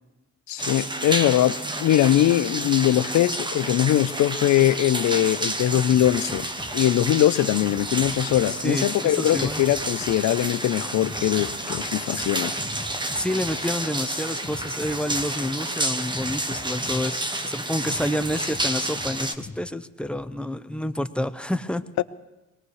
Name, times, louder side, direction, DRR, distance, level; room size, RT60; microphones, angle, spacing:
voice 1, 0.5-6.5 6.7-12.5 22.0-22.1, left 12 dB, 70° left, 0.7 m, -21 dB
sound 1, 0.6-19.3, right 1 dB, 15° right, 1.0 m, -30 dB
sound 2, 5.9-19.6, left 3 dB, 25° left, 1.3 m, -42 dB
voice 2, 8.5-9.6 13.1-21.8, left 1 dB, 5° left, 0.7 m, -28 dB
23.0 x 19.5 x 3.2 m
cardioid pair, 90°, 30 cm